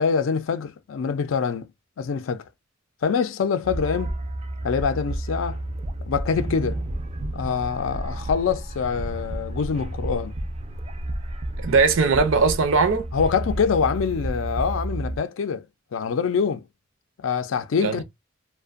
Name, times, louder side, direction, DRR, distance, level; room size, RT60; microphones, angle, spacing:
voice 1, 0.0-1.7 2.0-2.4 3.0-4.1 4.6-5.6 6.1-6.8 7.3-10.3 13.1-15.6 15.9-16.6 17.2-18.0, left 6 dB, 75° left, 0.4 m, -25 dB
sound 1, 3.6-15.2, right 1 dB, 30° right, 0.4 m, -31 dB
voice 2, 11.6-13.1 17.8-18.0, right 4 dB, 80° right, 0.6 m, -19 dB
2.5 x 2.2 x 2.4 m
head